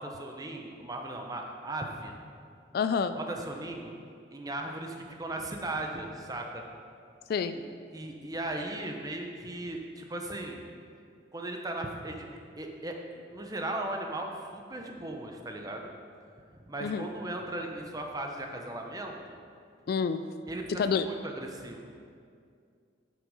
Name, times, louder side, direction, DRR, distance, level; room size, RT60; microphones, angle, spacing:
voice 1, 0.0-2.2 3.1-3.9 4.3-6.6 7.5-7.6 7.9-10.6 11.3-12.3 12.5-15.9 16.6-19.4 20.5-22.0, right 1 dB, 20° right, 2 dB, 0.8 m, -37 dB
voice 2, 2.7-3.2 7.3-7.6 16.8-17.1 19.9-20.2 20.8-21.1, left 6 dB, 55° left, 11 dB, 0.3 m, -28 dB
8.2 x 6.2 x 5.4 m, 2.3 s
head